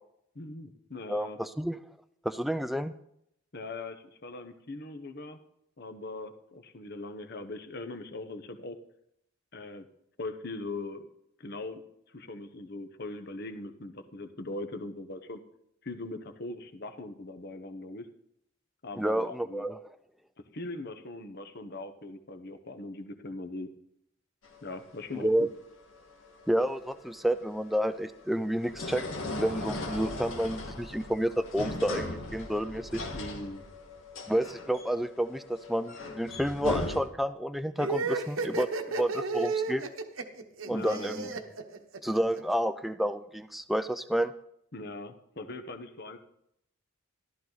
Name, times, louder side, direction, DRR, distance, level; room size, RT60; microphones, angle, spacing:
voice 1, 0.3-1.4 3.5-5.4 5.8-8.8 9.5-9.9 10.2-11.1 11.4-11.8 12.1-15.4 15.8-18.1 18.8-19.6 20.4-23.7 24.6-25.5 33.1-33.6 40.6-41.3 44.7-46.2, left 2 dB, 50° left, 8 dB, 1.0 m, -40 dB
voice 2, 1.1-1.8 2.2-2.9 19.0-19.8 25.2-25.5 26.5-33.0 34.3-38.7 39.0-39.8 40.7-41.3 42.0-44.3, equal, ahead, 10 dB, 0.4 m, -30 dB
sound 1, 24.4-37.0, left 2 dB, 70° left, 1.8 m, -38 dB
sound 2, 37.8-42.4, right 4 dB, 80° right, 1.1 m, -32 dB
14.0 x 12.0 x 4.0 m, 0.76 s
head